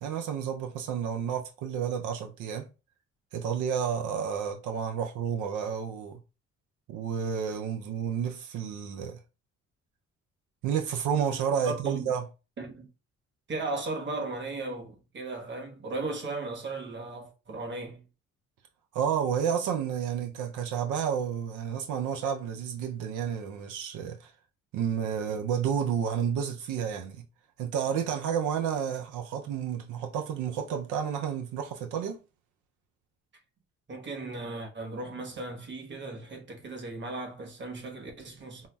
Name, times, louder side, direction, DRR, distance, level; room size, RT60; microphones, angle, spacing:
voice 1, 0.0-2.7 3.3-6.2 6.9-9.2 10.6-12.3 18.9-24.3 24.7-27.2 27.6-32.2, right 8 dB, 90° right, 0.5 m, -30 dB
voice 2, 11.6-12.1 12.6-12.9 13.5-18.0 33.9-38.7, right 2 dB, 40° right, 1.2 m, -36 dB
5.5 x 2.0 x 2.2 m
cardioid pair, 90°, 30 cm